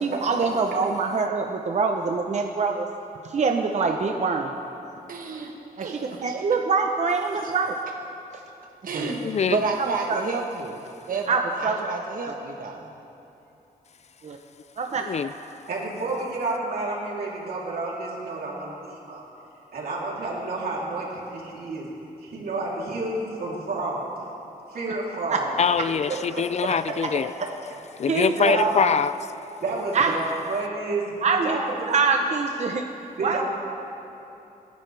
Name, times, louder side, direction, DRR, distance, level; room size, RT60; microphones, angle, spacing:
voice 1, 0.0-2.9 3.2-4.5 5.8-7.8 11.3-11.8 14.2-14.4 14.8-15.0 25.3-25.4 28.1-28.6 29.9-30.1 31.2-31.6 31.9-32.9 33.2-33.4, right 4 dB, 50° right, 3 dB, 0.8 m, -24 dB
voice 2, 5.1-6.5 7.3-7.5 8.8-9.2 9.5-10.8 11.1-12.9, right 4 dB, 65° right, 1 dB, 1.2 m, -30 dB
voice 3, 9.0-9.6 15.0-15.3 25.6-27.3 28.0-29.1, left 7 dB, 45° left, 14 dB, 0.4 m, -24 dB
voice 4, 15.7-19.2 19.7-21.9 22.2-24.1 24.7-25.5 26.1-26.7 28.1-28.7 29.6-31.9 33.2-33.4, right 3 dB, 85° right, -4 dB, 3.2 m, -30 dB
28.0 x 10.5 x 3.4 m, 2.9 s
wide cardioid pair, 115°, 15 cm